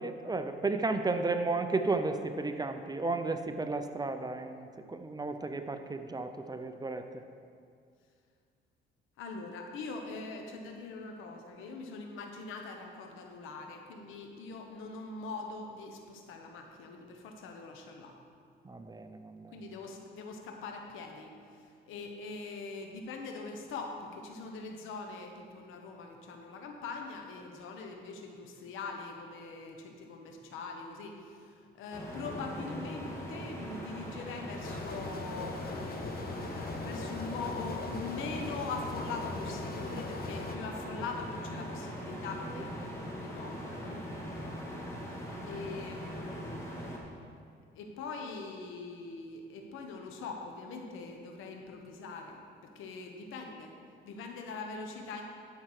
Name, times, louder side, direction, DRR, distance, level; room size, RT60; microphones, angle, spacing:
voice 1, 0.0-7.0 18.6-19.6 42.1-42.2 42.5-42.7, right 3 dB, 20° right, 7 dB, 0.6 m, -33 dB
voice 2, 9.2-18.1 19.5-35.6 36.8-46.7 47.7-53.7 54.0-55.2, left 4 dB, 90° left, 3 dB, 1.1 m, -42 dB
sound 1, 31.9-47.0, equal, 15° left, 2.1 m, -41 dB
sound 2, 34.6-40.6, left 4 dB, 50° left, 1.0 m, -41 dB
12.5 x 5.7 x 4.8 m, 2.2 s
cardioid pair, 90°, 20 cm